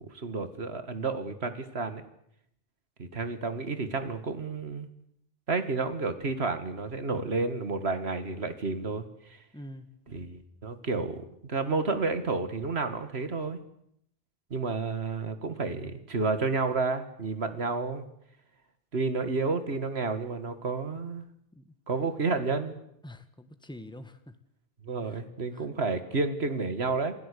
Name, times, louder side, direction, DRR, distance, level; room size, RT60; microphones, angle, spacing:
voice 1, 0.0-2.0 3.0-4.9 5.5-9.1 10.1-13.6 14.5-18.1 18.9-21.2 21.9-22.7 24.8-27.1, right 3 dB, 80° right, 10 dB, 2.2 m, -31 dB
voice 2, 9.5-9.9 21.5-21.7 23.0-24.4 25.0-25.2 25.5-25.7, left 1 dB, 5° left, 9 dB, 1.6 m, -46 dB
27.5 x 17.0 x 8.5 m, 0.74 s
omnidirectional pair, 1.1 m